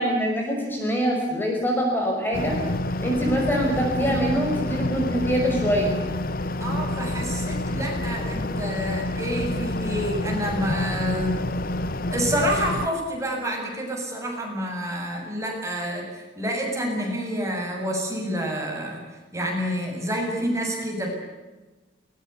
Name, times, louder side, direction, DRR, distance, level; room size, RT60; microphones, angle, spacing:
voice 1, 0.0-2.6 3.0-6.0, equal, 10° left, 0 dB, 5.8 m, -24 dB
sound 1, 2.3-12.9, left 1 dB, 55° left, 1.3 m, -28 dB
voice 2, 6.6-11.4 12.1-19.1 19.3-21.1, equal, 15° right, 0 dB, 7.7 m, -28 dB
23.0 x 21.0 x 8.3 m, 1.2 s
head